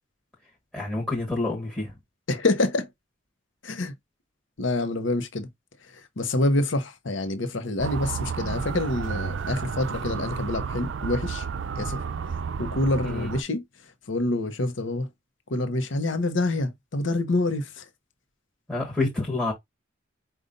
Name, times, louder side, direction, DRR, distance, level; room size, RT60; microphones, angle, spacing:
voice 1, 0.7-1.9 13.0-13.3 18.7-19.5, left 2 dB, 5° left, 1.2 m, -28 dB
voice 2, 2.3-2.9 3.6-3.9 4.6-5.5 5.9-11.5 11.8-12.0 12.6-13.6 14.1-15.1 15.5-17.8, left 2 dB, 65° left, 0.8 m, -26 dB
Motor vehicle (road) / Siren, 7.8-13.4, right 6 dB, 65° right, 0.4 m, -32 dB
5.2 x 2.4 x 3.8 m
head